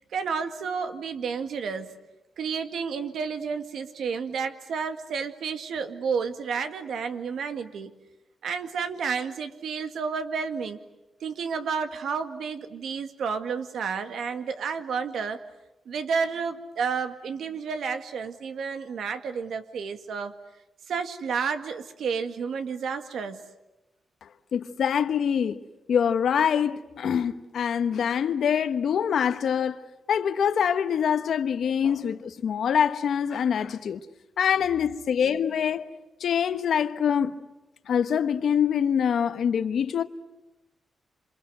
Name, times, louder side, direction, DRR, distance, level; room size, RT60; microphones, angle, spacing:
voice 1, 0.1-1.9 2.4-7.9 8.4-10.8 11.2-15.4 15.9-20.4 20.9-23.4, right 5 dB, 85° right, 2.0 m, -31 dB
voice 2, 24.5-25.6 25.9-29.8 30.1-34.0 34.4-35.8 36.2-37.3 37.9-40.0, left 8 dB, 75° left, 1.2 m, -24 dB
27.5 x 26.5 x 7.9 m
cardioid pair, 105°, 0 cm